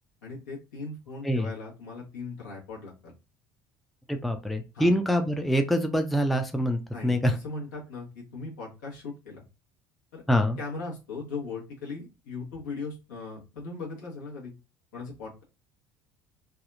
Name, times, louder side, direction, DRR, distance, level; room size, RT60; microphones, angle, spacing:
voice 1, 0.2-3.1 4.7-4.9 6.9-9.4 10.1-10.2 10.6-14.5 14.9-15.4, left 4 dB, 75° left, -3 dB, 1.1 m, -39 dB
voice 2, 4.1-7.4 10.3-10.6, equal, ahead, 5 dB, 0.4 m, -25 dB
2.7 x 2.3 x 2.5 m, 0.29 s
figure-of-eight pair, 60°, 10 cm